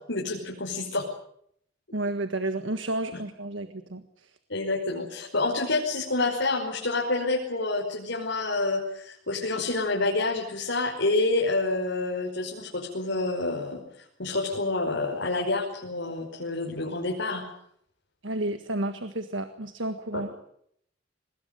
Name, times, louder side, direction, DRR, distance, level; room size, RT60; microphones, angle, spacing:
voice 1, 0.1-1.1 3.1-3.2 4.5-13.8 14.2-17.4 20.1-20.2, left 2 dB, 70° left, -2 dB, 5.4 m, -28 dB
voice 2, 1.9-4.4 18.2-20.3, right 1 dB, 75° right, 9 dB, 1.6 m, -31 dB
23.5 x 20.5 x 9.3 m, 0.70 s
head